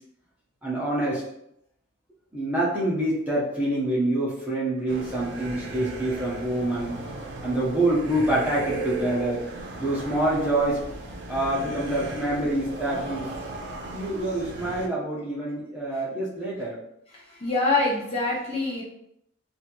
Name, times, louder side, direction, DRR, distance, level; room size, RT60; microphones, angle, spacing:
voice 1, 0.6-1.2 2.3-7.0 7.4-9.4 9.8-10.8 11.3-13.3 13.9-16.8, right 1 dB, 10° right, -7 dB, 0.7 m, -26 dB
sound 1, 4.9-14.9, right 2 dB, 65° right, 0.4 m, -36 dB
voice 2, 17.1-18.8, left 3 dB, 35° left, -4 dB, 0.6 m, -25 dB
2.7 x 2.4 x 2.9 m, 0.76 s
head